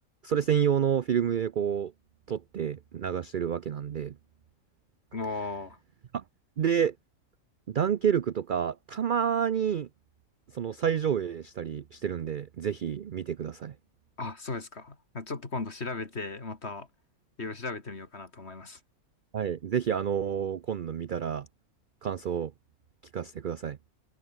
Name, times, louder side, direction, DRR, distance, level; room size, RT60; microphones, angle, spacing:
voice 1, 0.2-1.9 2.3-4.1 6.1-6.2 6.6-6.9 7.7-9.9 10.5-13.7 19.3-21.5 22.0-22.5 23.1-23.8, right 8 dB, 55° right, 0.5 m, -29 dB
voice 2, 5.1-5.8 14.2-16.9 17.4-18.8, left 3 dB, 45° left, 2.8 m, -36 dB
omnidirectional pair, 1.5 m